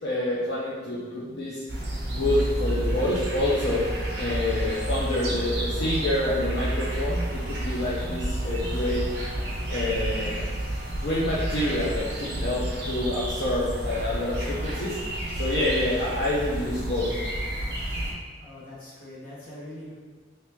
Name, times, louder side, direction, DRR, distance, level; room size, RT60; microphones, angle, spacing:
voice 1, 0.0-1.6 2.1-3.8 4.2-9.1 9.7-10.4 10.9-15.0 15.3-17.1, left 1 dB, 65° left, -8 dB, 0.6 m, -27 dB
sound 1, 1.7-18.1, right 1 dB, 70° right, 0.7 m, -30 dB
voice 2, 18.4-19.9, left 1 dB, 50° left, -7 dB, 1.1 m, -42 dB
2.9 x 2.8 x 3.4 m, 1.5 s
head